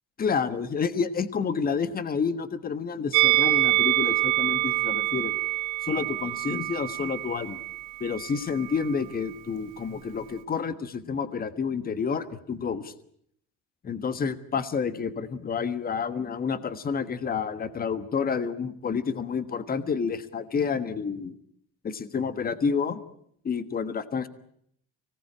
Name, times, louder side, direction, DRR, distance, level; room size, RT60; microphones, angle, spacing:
voice 1, 0.2-5.4 5.8-7.6 8.0-12.9 13.8-21.3 21.8-23.0 23.4-24.3, left 6 dB, 30° left, 13 dB, 1.4 m, -29 dB
Musical instrument, 3.1-8.4 8.6-8.8, right 18 dB, 90° right, 1.6 m, -26 dB
25.0 x 18.5 x 9.9 m, 0.69 s
cardioid pair, 125°, 32 cm